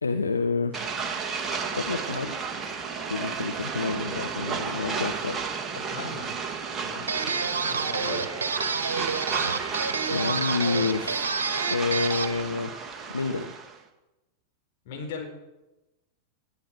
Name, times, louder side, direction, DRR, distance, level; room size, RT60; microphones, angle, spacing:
voice 1, 0.0-0.8 1.7-2.4 3.1-5.4 10.1-11.3 11.7-12.7 13.1-13.5, left 4 dB, 75° left, 7 dB, 0.9 m, -28 dB
sound 1, 0.7-13.8, right 5 dB, 20° right, 2.0 m, -33 dB
voice 2, 5.9-6.3 6.8-7.1 7.7-8.3 14.8-15.3, left 5 dB, 50° left, 1 dB, 4.4 m, -37 dB
sound 2, 7.1-12.4, right 5 dB, 70° right, 1.4 m, -29 dB
20.5 x 11.5 x 4.6 m, 1.0 s
figure-of-eight pair, 90°, 0 cm